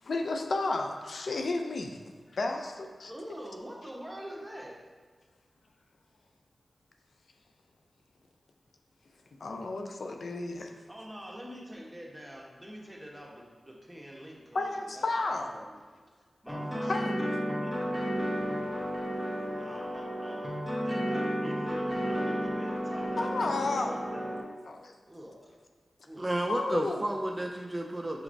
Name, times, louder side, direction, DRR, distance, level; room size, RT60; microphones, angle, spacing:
voice 1, 0.0-3.1 9.3-10.7 14.5-15.5 16.8-17.1 18.3-18.4 23.2-24.0 24.7-24.9 26.5-27.0, left 3 dB, 75° left, 4 dB, 0.3 m, -32 dB
voice 2, 3.0-4.8 10.9-15.7 16.4-18.1 19.4-20.5 20.8-24.3 25.0-25.5 26.0-26.2, equal, 10° right, -3 dB, 1.1 m, -46 dB
sound 1, 16.5-24.4, equal, 20° left, 1.1 m, -32 dB
voice 3, 26.2-28.2, right 1 dB, 30° right, 2 dB, 0.4 m, -32 dB
6.0 x 2.9 x 2.6 m, 1.5 s
cardioid pair, 40°, 0 cm